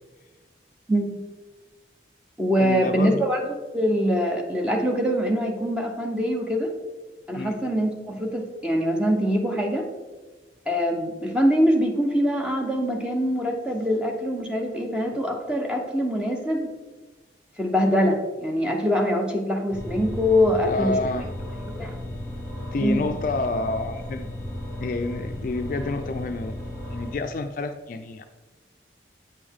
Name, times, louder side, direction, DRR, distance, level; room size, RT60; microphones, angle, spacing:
voice 1, 0.9-1.2 2.4-3.4 3.7-6.7 7.3-9.9 10.7-16.7 17.6-21.0 21.7-22.0 22.8-23.1, equal, 5° right, 1 dB, 0.8 m, -23 dB
voice 2, 2.6-3.2 7.3-7.6 20.6-21.3 22.6-24.3 24.8-26.5 26.9-28.2, left 3 dB, 50° left, 7 dB, 0.3 m, -29 dB
sound 1, 19.7-27.2, left 1 dB, 15° left, 1.7 m, -34 dB
8.5 x 5.2 x 3.6 m, 1.2 s
head